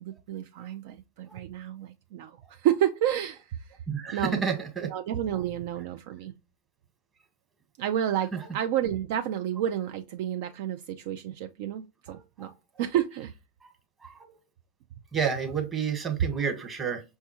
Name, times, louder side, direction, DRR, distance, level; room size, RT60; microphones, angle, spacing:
voice 1, 0.0-3.6 4.1-4.4 4.8-6.3 7.8-12.5 12.8-13.3 16.2-16.3, right 11 dB, 55° right, 0.3 m, -30 dB
voice 2, 3.9-4.9 12.4-12.5 14.0-14.1 15.1-17.0, right 6 dB, 20° right, 1.2 m, -29 dB
5.4 x 2.2 x 2.9 m
figure-of-eight pair, 90°, 0 cm